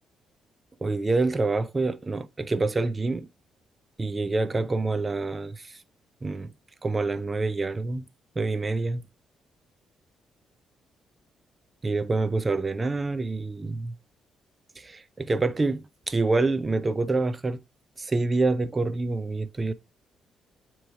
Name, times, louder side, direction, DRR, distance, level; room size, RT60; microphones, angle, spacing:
voice 1, 0.8-3.3 4.0-5.8 6.2-6.5 6.8-8.1 8.4-9.0 11.8-13.9 14.8-17.6 18.0-19.7, right 3 dB, 25° right, 0.5 m, -27 dB
8.0 x 3.0 x 4.6 m
cardioid pair, 90°, 0 cm